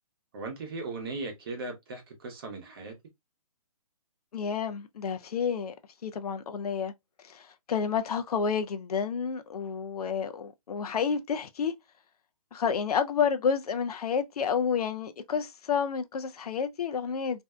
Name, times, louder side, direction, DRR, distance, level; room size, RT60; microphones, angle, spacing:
voice 1, 0.3-3.0, right 3 dB, 35° right, 0.8 m, -38 dB
voice 2, 4.3-5.7 6.0-6.9 7.2-11.7 12.5-17.4, left 6 dB, 75° left, 0.5 m, -30 dB
2.6 x 2.1 x 2.3 m
hypercardioid pair, 155°, 20 cm